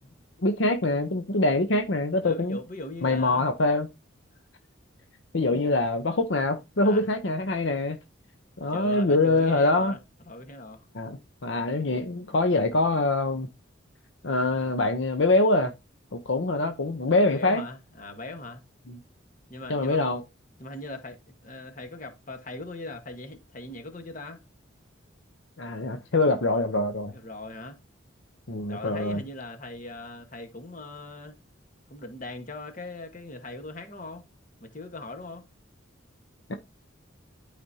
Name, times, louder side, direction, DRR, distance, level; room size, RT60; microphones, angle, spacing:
voice 1, 0.4-2.6 3.0-3.9 5.3-8.0 8.6-10.0 10.9-13.5 14.2-15.7 16.1-17.6 18.9-19.0 19.7-20.2 25.6-27.1 28.5-29.2 36.5-36.6, left 2 dB, 65° left, 0.8 m, -24 dB
voice 2, 2.2-3.4 5.5-5.7 6.8-7.1 8.7-10.0 10.3-10.9 17.2-18.6 19.5-20.0 20.6-21.2 21.4-24.4 27.1-27.8 28.7-31.4 31.9-34.3 34.6-35.5, left 2 dB, 40° left, 1.4 m, -40 dB
12.0 x 5.1 x 2.8 m
head